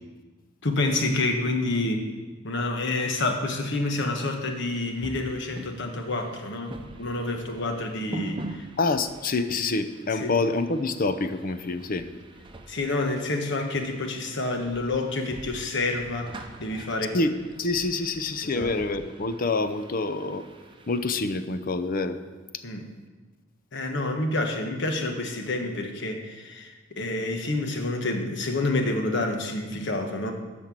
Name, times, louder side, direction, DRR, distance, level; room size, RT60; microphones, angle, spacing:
voice 1, 0.6-2.1 2.4-8.6 10.1-10.3 12.7-17.2 18.4-18.8 22.6-22.9 23.7-30.3, left 2 dB, 65° left, 4 dB, 1.3 m, -28 dB
sound 1, 4.7-21.1, right 1 dB, 25° right, 0.7 m, -44 dB
voice 2, 8.8-12.1 17.1-17.3 17.6-20.4 20.9-22.2, left 3 dB, 45° left, 10 dB, 0.6 m, -26 dB
13.0 x 4.4 x 7.5 m, 1.3 s
head